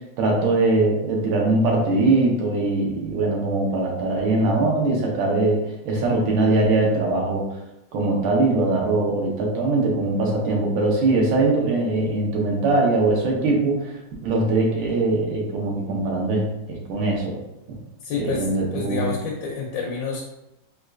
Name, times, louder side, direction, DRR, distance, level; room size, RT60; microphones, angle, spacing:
voice 1, 0.2-7.4 7.9-13.9 14.2-17.4 17.7-17.8 18.1-19.1, right 2 dB, 80° right, -2 dB, 1.5 m, -21 dB
voice 2, 18.0-20.2, left 4 dB, 75° left, -2 dB, 1.2 m, -28 dB
4.2 x 2.3 x 2.4 m, 0.90 s
omnidirectional pair, 2.1 m